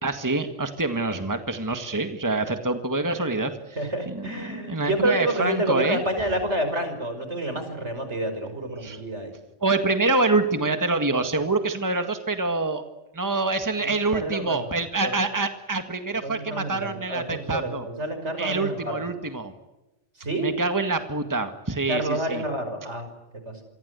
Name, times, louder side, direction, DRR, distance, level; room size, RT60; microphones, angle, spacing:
voice 1, 0.0-3.5 4.1-6.0 8.8-9.0 9.6-12.8 13.1-17.9 18.4-19.5 20.4-22.4, right 3 dB, 15° right, 7 dB, 1.9 m, -26 dB
voice 2, 3.8-9.3 13.8-14.7 15.0-15.2 16.2-19.0 20.2-20.5 21.9-23.1 23.4-23.6, right 1 dB, 75° right, 8 dB, 6.0 m, -28 dB
28.0 x 24.0 x 8.2 m, 0.99 s
omnidirectional pair, 1.2 m